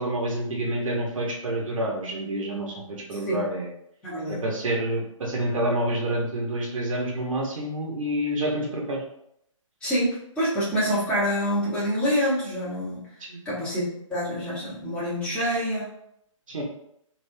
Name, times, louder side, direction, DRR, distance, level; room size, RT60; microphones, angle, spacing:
voice 1, 0.0-3.7 4.3-9.0 13.3-13.4 16.5-16.6, right 1 dB, 70° right, -2 dB, 1.0 m, -28 dB
voice 2, 3.1-3.5 4.0-4.4 9.8-13.1 13.4-15.9, equal, 5° left, -12 dB, 1.5 m, -26 dB
3.3 x 2.7 x 2.7 m, 0.75 s
hypercardioid pair, 145°, 17 cm